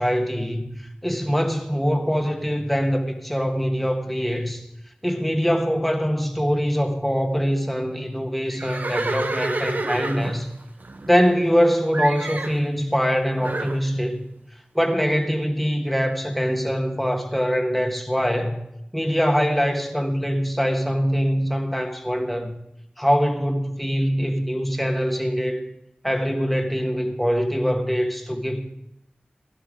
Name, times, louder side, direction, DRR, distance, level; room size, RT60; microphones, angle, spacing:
voice 1, 0.0-4.6 5.0-10.5 11.1-14.2 14.7-18.6 18.9-22.5 23.0-25.6 26.0-28.6, equal, 5° left, 1.6 m, -23 dB
Livestock farm animals working animals, 8.5-11.6 11.9-12.6 13.4-13.8, right 2 dB, 70° right, 0.9 m, -29 dB
16.5 x 12.0 x 3.7 m
wide cardioid pair, 70°, 3 cm